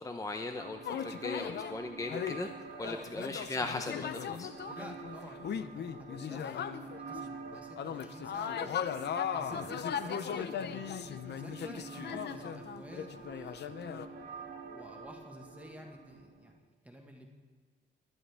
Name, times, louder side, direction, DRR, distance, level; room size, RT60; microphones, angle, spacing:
voice 1, 0.0-2.5 2.8-4.5, left 2 dB, 15° left, 5 dB, 0.8 m, -38 dB
sound 1, 0.6-16.6, right 4 dB, 55° right, 1.7 m, -48 dB
sound 2, 0.8-1.7 2.1-7.2 7.5-14.1, left 8 dB, 65° left, 0.7 m, -38 dB
voice 2, 4.6-8.7 9.3-14.0 14.7-17.3, equal, 10° right, 1 dB, 1.7 m, -51 dB
24.0 x 9.0 x 3.5 m, 1.5 s
cardioid pair, 115°, 19 cm